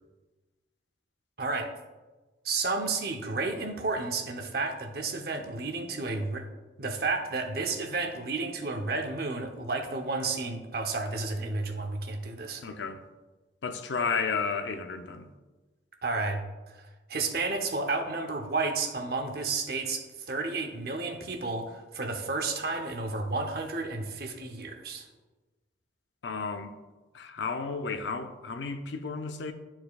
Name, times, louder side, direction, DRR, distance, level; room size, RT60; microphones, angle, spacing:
voice 1, 1.4-1.7 2.4-6.4 6.8-12.6 16.0-16.4 16.7-25.0, right 3 dB, 55° right, 0.8 m, -32 dB
voice 2, 12.6-13.0 13.6-15.3 26.2-26.7 27.1-29.5, left 5 dB, 75° left, 0.5 m, -32 dB
11.5 x 4.4 x 2.3 m
head